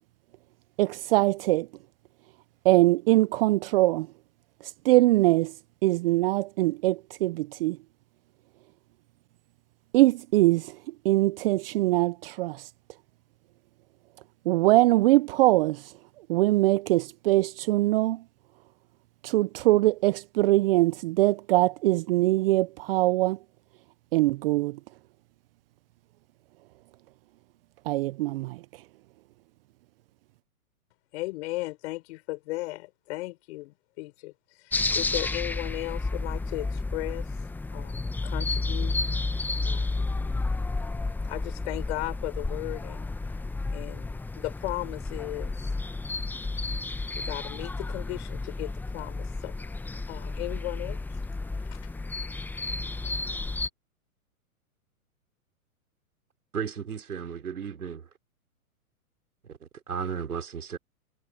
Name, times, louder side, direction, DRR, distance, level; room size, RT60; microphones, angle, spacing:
voice 1, 0.8-1.7 2.6-4.1 4.6-5.5 5.8-7.8 9.9-10.8 11.0-12.7 14.5-15.9 16.3-18.2 19.2-23.4 24.1-24.8 27.9-28.6, right 18 dB, 40° right, 0.7 m, -22 dB
voice 2, 31.1-37.4 37.7-39.0 39.6-40.2 41.3-43.1 43.7-45.7 47.1-49.6 50.1-51.2 51.7-51.8, left 21 dB, 50° left, 6.1 m, -36 dB
sound 1, 34.7-53.7, left 3 dB, 5° left, 0.9 m, -31 dB
voice 3, 56.5-58.1 59.4-60.8, right 7 dB, 85° right, 4.2 m, -34 dB
hypercardioid pair, 125°, 44 cm